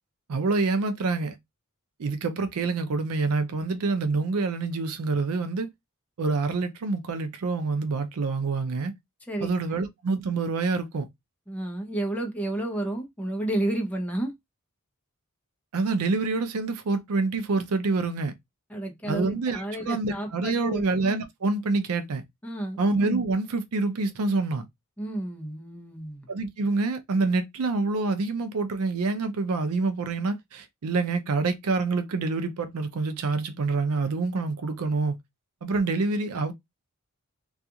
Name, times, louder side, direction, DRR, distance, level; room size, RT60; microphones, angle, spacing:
voice 1, 0.3-1.4 2.0-5.7 6.2-8.9 9.4-11.1 15.7-18.3 19.1-22.2 22.8-24.6 26.3-35.2 35.6-36.5, right 3 dB, 75° right, 0.5 m, -27 dB
voice 2, 11.5-14.3 18.7-20.8 22.4-22.8 25.0-26.3, right 1 dB, 5° left, 0.6 m, -31 dB
2.4 x 2.3 x 2.7 m
head